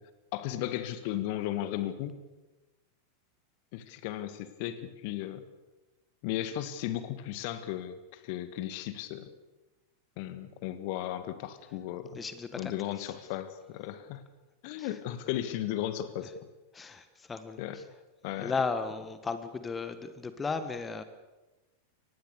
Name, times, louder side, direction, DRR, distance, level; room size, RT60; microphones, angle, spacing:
voice 1, 0.3-2.1 3.7-5.4 6.2-9.3 10.2-12.2 12.6-14.2 14.6-16.3 17.6-17.8 18.2-18.5, left 12 dB, 45° left, 12 dB, 1.7 m, -35 dB
voice 2, 12.1-12.7 14.8-14.9 16.7-17.6 18.4-21.0, left 4 dB, 15° left, 11 dB, 1.6 m, -35 dB
24.0 x 19.5 x 6.9 m, 1.1 s
figure-of-eight pair, 90°, 0 cm